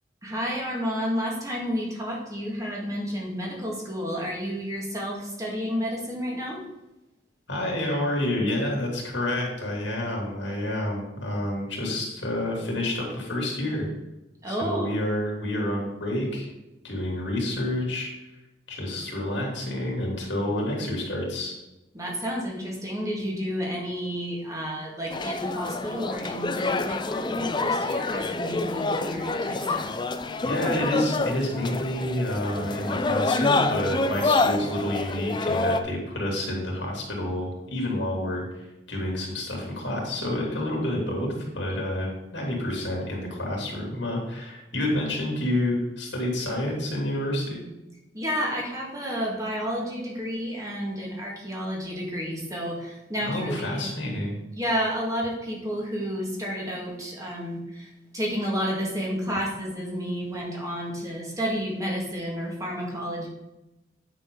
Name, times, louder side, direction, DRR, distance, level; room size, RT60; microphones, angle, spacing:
voice 1, 0.2-6.6 14.4-14.9 21.9-30.0 48.1-53.9 54.6-63.3, equal, 20° right, -3 dB, 1.8 m, -31 dB
voice 2, 7.5-13.9 14.5-16.5 16.8-18.1 18.7-21.5 30.4-47.6 53.2-54.3, left 1 dB, 70° left, -1 dB, 2.9 m, -29 dB
sound 1, 25.1-35.8, left 3 dB, 25° left, 0.5 m, -27 dB
9.1 x 6.7 x 3.8 m, 0.97 s
head